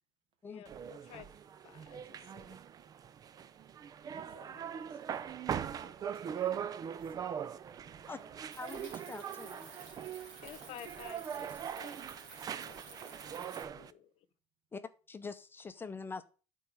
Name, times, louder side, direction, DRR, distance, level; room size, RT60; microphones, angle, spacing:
voice 1, 0.4-1.3 1.6-2.6 4.3-5.0 10.4-13.3 13.7-14.3, left 11 dB, 65° left, 1.0 m, -54 dB
sound 1, 0.7-13.9, right 8 dB, 35° right, 0.5 m, -41 dB
voice 2, 5.5-8.4 13.0-13.2, right 6 dB, 55° right, 1.4 m, -58 dB
sound 2, 8.5-13.6, right 5 dB, 80° right, 2.9 m, -52 dB
voice 3, 8.6-9.7 13.6-13.8 14.7-16.2, left 4 dB, 20° left, 0.7 m, -44 dB
8.7 x 4.7 x 6.7 m
cardioid pair, 130°, 11 cm